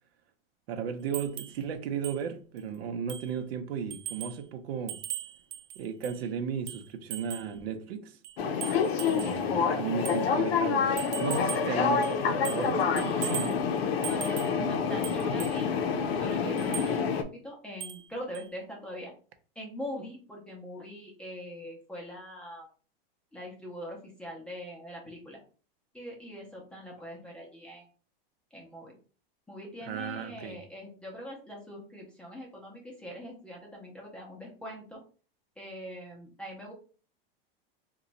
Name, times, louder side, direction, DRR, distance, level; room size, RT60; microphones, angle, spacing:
voice 1, 0.7-5.0 5.8-8.2 9.0-13.5 14.6-14.8 29.9-30.6, right 7 dB, 85° right, 0.7 m, -35 dB
sound 1, 1.1-1.6 2.0-2.2 2.6-2.7 3.1-3.4 3.9-4.4 4.9-6.2 6.7-7.5 8.2-9.4 10.1-10.2 11.0-11.7 12.0-12.7 13.0-13.6 14.0-14.6 15.0-15.6 16.6-16.9 17.8-18.1 18.3-18.5, right 12 dB, 50° right, 0.4 m, -39 dB
sound 2, 8.4-17.2, left 6 dB, 85° left, 0.6 m, -28 dB
voice 2, 12.7-13.4 14.0-15.7 16.2-19.1 19.6-22.7 23.3-25.4 25.9-27.9 28.5-28.9 29.5-35.0 35.6-36.7, equal, 5° left, 0.5 m, -42 dB
2.9 x 2.3 x 3.9 m
supercardioid pair, 165°, 30 cm